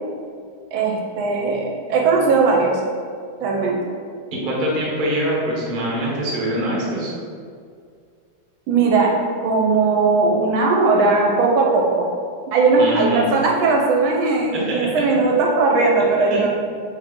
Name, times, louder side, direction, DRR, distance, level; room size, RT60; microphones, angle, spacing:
voice 1, 0.7-2.8 3.4-3.8 8.7-9.1 9.4-12.0 12.5-16.5, right 3 dB, 75° right, -1 dB, 1.4 m, -18 dB
voice 2, 4.3-7.1 12.8-13.3 14.5-14.7 16.3-16.4, right 1 dB, 40° right, -4 dB, 0.7 m, -23 dB
4.1 x 3.5 x 3.6 m, 2.1 s
omnidirectional pair, 2.4 m